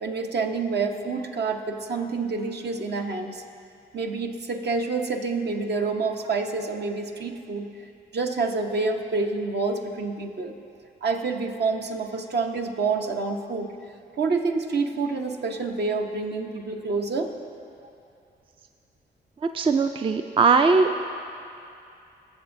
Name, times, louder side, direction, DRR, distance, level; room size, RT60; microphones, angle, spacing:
voice 1, 0.0-3.4 3.9-7.7 8.1-10.5 11.0-13.7 14.2-17.3, right 4 dB, 60° right, 4 dB, 0.8 m, -27 dB
voice 2, 19.5-21.0, right 4 dB, 30° right, 7 dB, 0.3 m, -20 dB
17.0 x 7.1 x 2.6 m, 2.6 s
cardioid pair, 60°, 20 cm